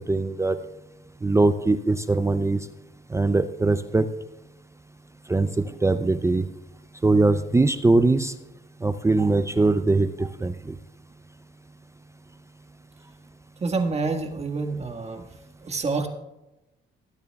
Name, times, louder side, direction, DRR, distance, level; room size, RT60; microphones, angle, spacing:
voice 1, 0.1-0.6 1.2-2.6 3.1-4.1 5.3-6.5 7.0-8.3 8.8-10.8, right 3 dB, 15° right, 11 dB, 0.5 m, -21 dB
voice 2, 13.6-15.2 15.6-16.1, right 3 dB, 35° right, 5 dB, 1.6 m, -27 dB
21.0 x 9.2 x 2.3 m, 0.98 s
cardioid pair, 90°, 20 cm